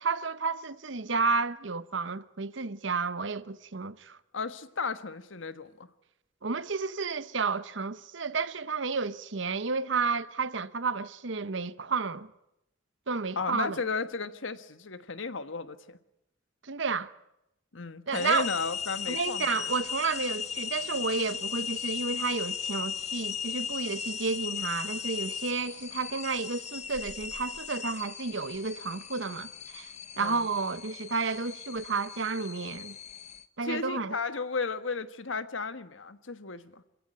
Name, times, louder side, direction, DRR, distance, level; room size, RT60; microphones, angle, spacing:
voice 1, 0.0-4.2 6.4-12.3 13.1-13.8 16.6-17.1 18.1-18.5 19.1-29.9 30.2-33.0 33.6-34.2, right 4 dB, 70° right, 0.9 m, -31 dB
voice 2, 4.3-5.9 13.3-16.0 17.7-19.6 30.2-30.5 33.6-36.8, left 4 dB, 80° left, 1.4 m, -34 dB
sound 1, 18.1-33.4, left 7 dB, 35° left, 1.0 m, -37 dB
26.5 x 16.0 x 9.8 m
head